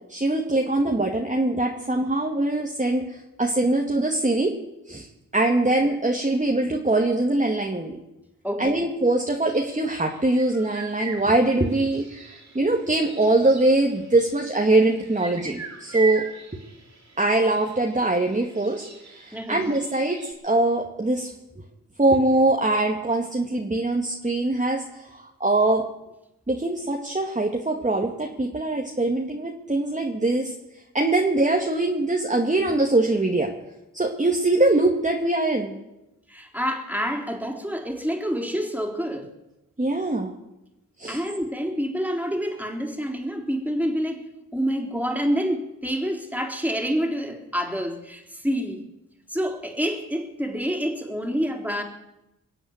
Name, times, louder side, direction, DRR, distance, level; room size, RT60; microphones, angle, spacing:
voice 1, 0.1-4.5 4.9-5.1 5.3-8.0 8.6-16.2 17.2-20.2 20.4-21.3 22.0-25.8 26.5-30.5 30.9-33.5 33.9-35.7 39.8-40.3 41.0-41.2, right 2 dB, 20° right, 1 dB, 2.1 m, -22 dB
voice 2, 8.4-8.8 19.3-19.6 36.3-39.3 41.1-44.2 44.5-48.8 49.3-51.8, equal, 5° right, 3 dB, 3.8 m, -27 dB
sound 1, 9.3-20.3, right 4 dB, 55° right, 3.8 m, -40 dB
22.5 x 7.9 x 8.1 m, 0.93 s
supercardioid pair, 40°, 34 cm